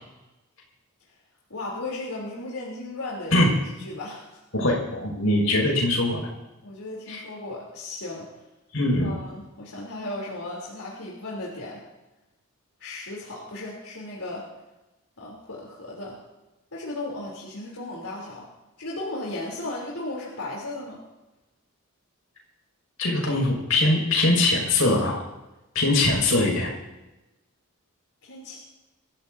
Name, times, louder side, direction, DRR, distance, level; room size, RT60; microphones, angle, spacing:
voice 1, 1.5-3.5 3.8-4.4 6.6-8.3 9.0-11.8 12.8-14.5 15.2-16.2 16.7-18.5 18.8-21.0 28.2-28.6, left 2 dB, 90° left, -4 dB, 3.5 m, -35 dB
voice 2, 4.5-6.3 7.1-7.2 8.7-9.1 23.0-25.2 25.7-26.7, left 2 dB, 70° left, -2 dB, 5.9 m, -22 dB
24.5 x 15.0 x 2.8 m, 1.0 s
head